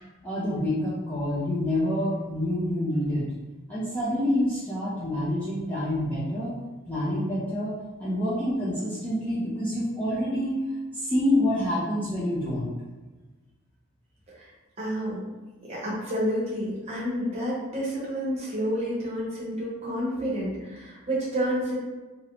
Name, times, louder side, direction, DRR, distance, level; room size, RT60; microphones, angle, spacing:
voice 1, 0.2-3.3 3.7-6.6 6.9-10.6 10.9-12.7, left 1 dB, 5° left, -10 dB, 0.4 m, -27 dB
voice 2, 14.8-15.3 15.6-21.8, equal, 30° right, -7 dB, 0.8 m, -29 dB
2.5 x 2.0 x 2.9 m, 1.2 s
head